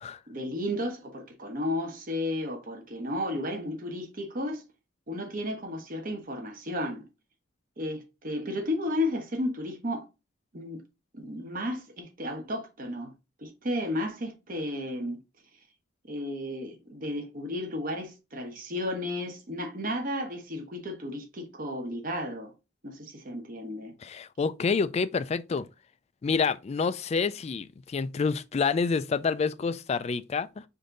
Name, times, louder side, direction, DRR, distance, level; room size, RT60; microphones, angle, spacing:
voice 1, 0.3-4.6 5.1-7.1 7.8-10.0 10.5-10.8 11.1-13.1 13.4-15.2 16.0-22.5 22.8-24.0, left 1 dB, 45° right, 1.1 m, -33 dB
voice 2, 24.0-25.7 26.2-30.6, left 5 dB, 35° left, 0.3 m, -28 dB
5.2 x 2.7 x 3.7 m
head